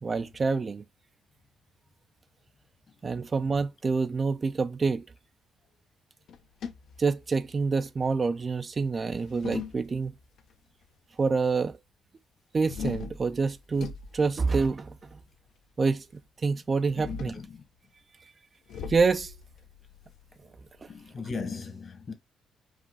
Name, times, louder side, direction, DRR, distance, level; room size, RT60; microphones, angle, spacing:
voice 1, 0.0-0.8 3.0-5.1 7.0-10.1 11.2-11.8 12.5-15.2 15.8-16.1 16.4-17.4 18.9-19.3 20.8-20.9, right 4 dB, 35° right, 0.4 m, -27 dB
sound 1, 6.3-7.7 9.0-10.4 12.6-15.2 16.8-17.5 18.7-21.1, left 6 dB, 75° left, 0.7 m, -41 dB
voice 2, 17.0-17.4 20.9-22.1, left 4 dB, 45° left, 1.3 m, -37 dB
4.8 x 2.4 x 3.9 m
cardioid pair, 90°, 0 cm